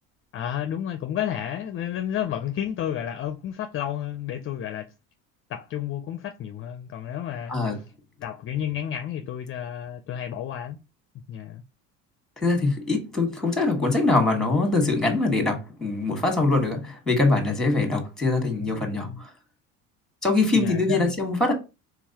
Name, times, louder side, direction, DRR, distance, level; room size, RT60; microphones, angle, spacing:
voice 1, 0.3-4.8 5.5-7.7 8.2-10.8 11.3-11.6 18.6-19.2 20.6-21.1, left 10 dB, 35° left, 0.5 m, -31 dB
voice 2, 12.4-19.3 20.2-21.5, left 3 dB, ahead, 1.5 m, -23 dB
4.5 x 3.9 x 2.9 m
supercardioid pair, 110°, 35 cm